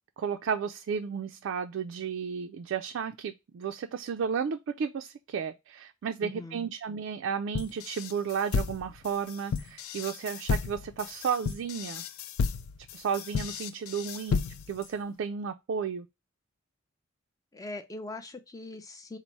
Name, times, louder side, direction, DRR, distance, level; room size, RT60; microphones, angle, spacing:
voice 1, 0.2-12.0 12.9-16.1, right 6 dB, 60° right, 0.3 m, -33 dB
voice 2, 6.2-6.6 17.5-19.2, left 2 dB, 15° left, 0.5 m, -41 dB
sound 1, 7.5-14.8, left 5 dB, 85° left, 0.4 m, -32 dB
4.0 x 2.0 x 4.4 m
head